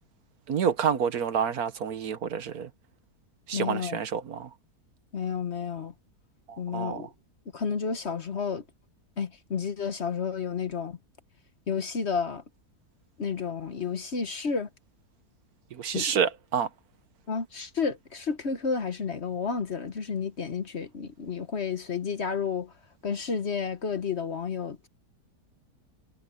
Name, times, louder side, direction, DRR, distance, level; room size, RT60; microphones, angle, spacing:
voice 1, 0.5-2.7 3.5-4.5 6.5-7.1 15.7-16.7, right 7 dB, 70° right, 1.5 m, -28 dB
voice 2, 3.5-4.0 5.1-5.9 6.6-7.1 7.5-8.6 9.2-11.0 11.7-12.4 13.2-14.7 15.9-16.1 17.3-22.7 23.0-24.9, left 5 dB, 45° left, 1.3 m, -31 dB
omnidirectional pair, 1.7 m